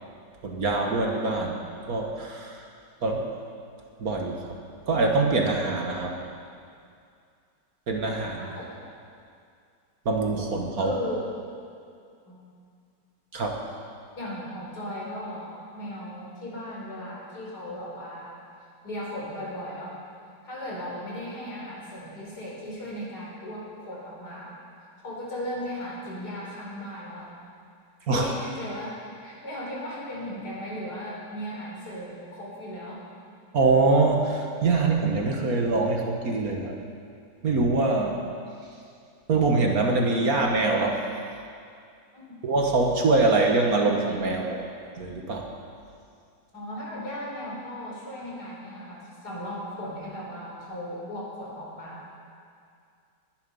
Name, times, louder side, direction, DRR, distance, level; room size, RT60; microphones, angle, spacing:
voice 1, 0.4-1.6 1.9-2.5 3.0-3.3 4.0-4.4 4.9-6.1 7.9-8.5 10.1-10.9 13.3-13.6 28.1-28.3 33.5-36.7 37.4-38.2 39.3-41.0 42.4-44.7 45.0-45.5, right 3 dB, 55° right, 1 dB, 1.9 m, -24 dB
voice 2, 10.8-11.3 12.3-12.4 14.2-18.4 18.8-20.0 20.4-24.5 25.0-27.3 28.2-33.0 42.1-42.2 46.5-52.1, equal, 60° left, -4 dB, 4.7 m, -36 dB
21.5 x 11.0 x 5.4 m, 2.3 s
omnidirectional pair, 1.9 m